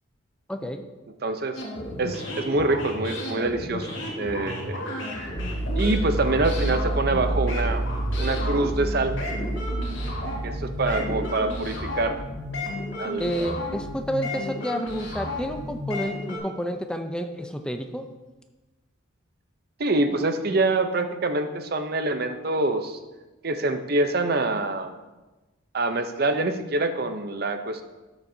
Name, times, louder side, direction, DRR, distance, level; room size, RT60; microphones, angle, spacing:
voice 1, 0.5-0.8 13.2-18.1, equal, 5° left, 6 dB, 0.5 m, -30 dB
voice 2, 1.2-1.6 2.0-4.8 5.8-7.8 8.2-9.1 10.4-12.2 13.0-13.3 19.8-23.0 23.4-24.9 25.7-27.8, right 2 dB, 50° right, 8 dB, 0.7 m, -25 dB
sound 1, 1.5-16.4, left 1 dB, 65° left, 3.1 m, -33 dB
sound 2, 5.4-12.7, right 2 dB, 80° right, 1.2 m, -29 dB
12.5 x 7.1 x 2.7 m, 1.1 s
head